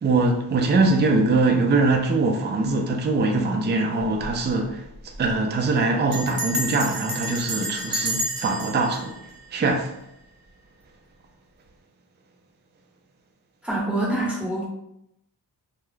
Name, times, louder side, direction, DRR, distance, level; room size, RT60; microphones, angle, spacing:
voice 1, 0.0-9.2 9.5-9.9, right 3 dB, 25° right, 0.3 m, -22 dB
Bell, 4.0-4.4 4.6-4.7 4.9-5.3 6.1-10.2, equal, 50° right, 0.8 m, -31 dB
voice 2, 13.6-14.7, right 1 dB, 5° right, 1.0 m, -25 dB
2.2 x 2.0 x 3.1 m
cardioid pair, 70°, 43 cm